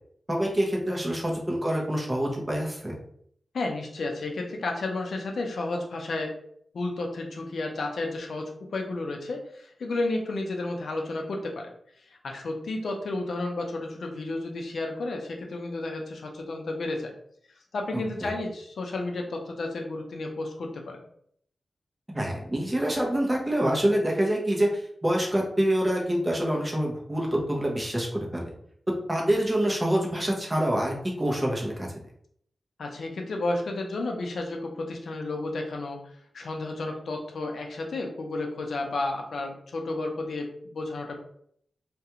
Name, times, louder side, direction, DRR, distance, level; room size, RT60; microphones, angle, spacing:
voice 1, 0.3-3.0 18.2-18.3 22.1-28.5 29.1-31.9, right 1 dB, 15° right, -2 dB, 0.6 m, -26 dB
voice 2, 3.5-6.3 6.7-11.7 12.1-17.1 17.7-21.0 32.8-36.0 36.3-41.1, left 2 dB, 80° left, 2 dB, 0.5 m, -32 dB
2.4 x 2.2 x 2.8 m, 0.66 s
wide cardioid pair, 130°, 0 cm